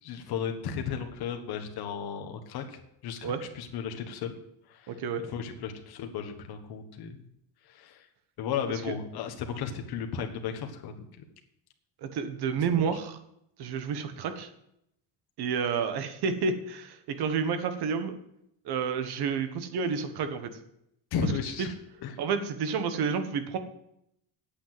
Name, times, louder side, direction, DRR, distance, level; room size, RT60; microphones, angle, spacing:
voice 1, 0.0-4.4 4.7-4.9 5.3-7.2 7.7-8.0 8.4-10.9 12.8-12.9 21.1-21.7 22.0-22.2, left 7 dB, 55° left, 5 dB, 1.5 m, -34 dB
voice 2, 4.9-5.3 8.7-8.9 12.0-13.2 13.6-14.5 15.4-18.2 18.6-20.6 21.6-21.7 22.2-23.6, right 6 dB, 55° right, 9 dB, 1.4 m, -30 dB
8.5 x 8.4 x 7.6 m, 0.77 s
cardioid pair, 165°, 45 cm